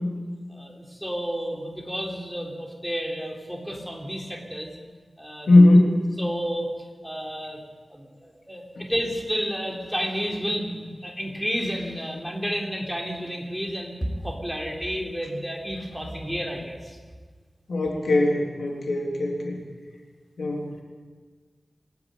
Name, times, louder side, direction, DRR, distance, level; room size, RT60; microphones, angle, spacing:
voice 1, 0.5-4.7 5.2-5.8 6.2-6.7 7.0-7.6 7.9-17.0, equal, ahead, 0 dB, 3.7 m, -31 dB
voice 2, 5.5-6.0 8.8-8.9 17.7-19.6 20.4-20.7, left 2 dB, 90° left, 0 dB, 3.5 m, -19 dB
26.5 x 10.5 x 9.2 m, 1.5 s
wide cardioid pair, 90°, 0 cm